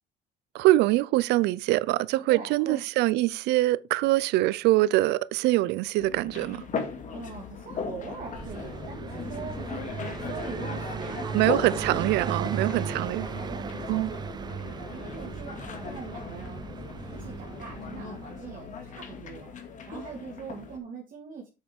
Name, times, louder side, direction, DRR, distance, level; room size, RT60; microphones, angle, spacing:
voice 1, 0.5-6.6 11.3-13.3 13.9-14.1, right 17 dB, 85° right, 0.5 m, -24 dB
voice 2, 2.3-2.8 7.1-11.8 12.2-16.7 17.1-19.5 19.9-21.5, right 5 dB, 55° right, 2.2 m, -42 dB
sound 1, 6.0-20.8, left 5 dB, 50° left, 2.3 m, -38 dB
Car passing by, 8.1-18.7, right 7 dB, 25° right, 0.4 m, -37 dB
8.0 x 6.5 x 4.5 m
cardioid pair, 110°, 17 cm